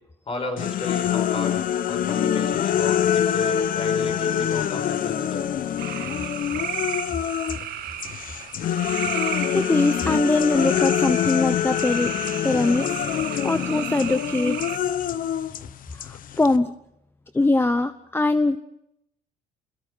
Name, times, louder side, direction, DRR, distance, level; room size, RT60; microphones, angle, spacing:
voice 1, 0.3-1.5 1.9-5.5, left 3 dB, 35° left, 4 dB, 6.6 m, -34 dB
sound 1, 0.6-7.7 8.0-16.6, left 9 dB, 55° left, 1.1 m, -25 dB
sound 2, 5.8-14.8, right 11 dB, 65° right, 1.7 m, -34 dB
voice 2, 9.5-12.1 12.4-13.0 13.4-14.6 16.0-16.7 17.3-18.6, left 2 dB, 15° left, 11 dB, 0.9 m, -22 dB
29.5 x 22.0 x 5.8 m, 0.80 s
cardioid pair, 110°, 17 cm